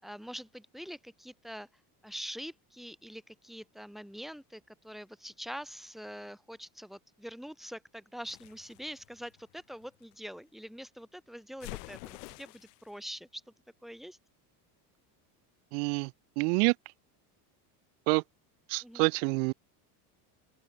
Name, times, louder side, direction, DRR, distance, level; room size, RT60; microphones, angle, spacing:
voice 1, 0.0-1.7 2.0-13.4 13.8-14.2 18.8-19.1, equal, ahead, 4.9 m, -44 dB
sound 1, 8.2-10.1 11.6-12.9, left 31 dB, 75° left, 6.9 m, -47 dB
voice 2, 15.7-16.7 18.1-18.2 18.7-19.5, right 34 dB, 70° right, 1.1 m, -27 dB
open air
cardioid pair, 180°, 46 cm